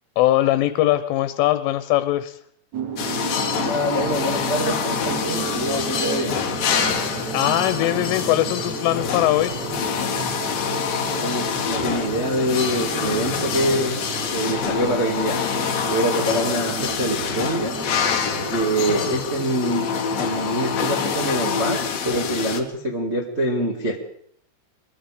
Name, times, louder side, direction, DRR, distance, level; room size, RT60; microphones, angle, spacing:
voice 1, 0.2-2.4 7.3-9.5, left 14 dB, 90° left, 11 dB, 3.5 m, -21 dB
sound 1, 2.7-18.9, right 8 dB, 85° right, 1.6 m, -34 dB
sound 2, 3.0-22.6, left 6 dB, 55° left, 3.2 m, -26 dB
voice 2, 3.6-6.4 11.2-14.0 14.3-15.4 15.8-17.8 18.5-19.9 20.2-24.1, right 1 dB, 35° right, 0 dB, 1.0 m, -25 dB
24.0 x 22.5 x 5.1 m, 0.66 s
omnidirectional pair, 5.5 m